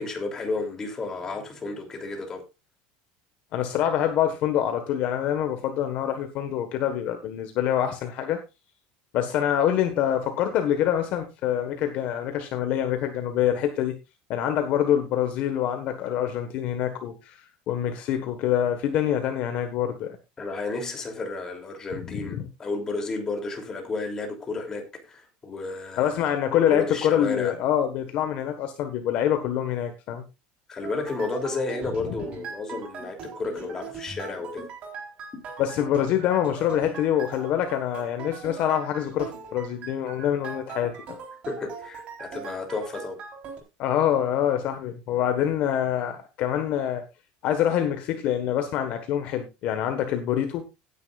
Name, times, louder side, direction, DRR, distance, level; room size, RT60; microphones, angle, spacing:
voice 1, 0.0-2.4 20.4-26.3 26.7-27.5 30.7-34.7 41.5-43.2, left 3 dB, 15° left, 3 dB, 3.0 m, -32 dB
voice 2, 3.5-8.4 9.1-14.0 14.3-20.2 22.1-22.5 26.0-30.2 35.6-41.2 43.8-47.0 47.4-50.7, left 10 dB, 40° left, 7 dB, 1.4 m, -25 dB
sound 1, 30.8-43.6, right 5 dB, 35° right, 3.9 m, -41 dB
17.5 x 9.9 x 2.5 m, 0.26 s
cardioid pair, 175°, 4 cm